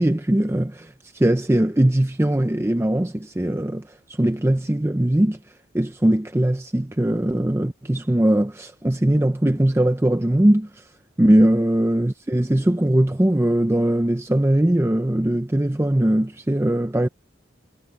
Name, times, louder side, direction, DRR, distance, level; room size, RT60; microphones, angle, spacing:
voice 1, 0.0-10.9 11.2-17.1, right 1 dB, 15° right, 0.5 m, -20 dB
head